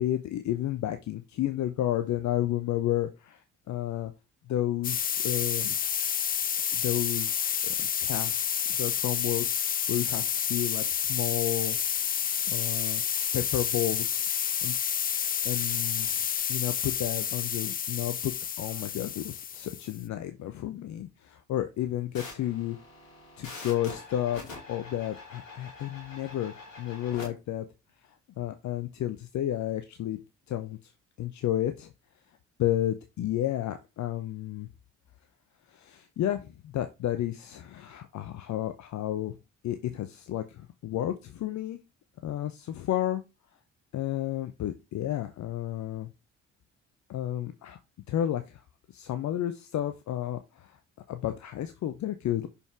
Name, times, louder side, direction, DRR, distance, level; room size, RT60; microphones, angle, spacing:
voice 1, 0.0-3.4 3.7-4.1 4.5-5.8 6.7-11.8 12.5-13.0 13.3-14.3 14.6-14.7 15.4-16.1 16.5-18.3 18.6-22.8 23.4-27.7 28.4-30.2 30.5-30.8 31.2-31.9 32.6-34.7 35.7-39.3 39.6-41.8 42.2-43.2 43.9-46.1 47.1-47.8 48.1-48.6 48.9-50.7 51.1-52.5, left 12 dB, 50° left, 9 dB, 0.8 m, -32 dB
sound 1, 4.8-20.0, left 8 dB, 25° left, 0.4 m, -29 dB
sound 2, 22.1-27.3, left 3 dB, 85° left, 2.4 m, -45 dB
6.5 x 5.4 x 3.5 m, 0.26 s
figure-of-eight pair, 45°, 38 cm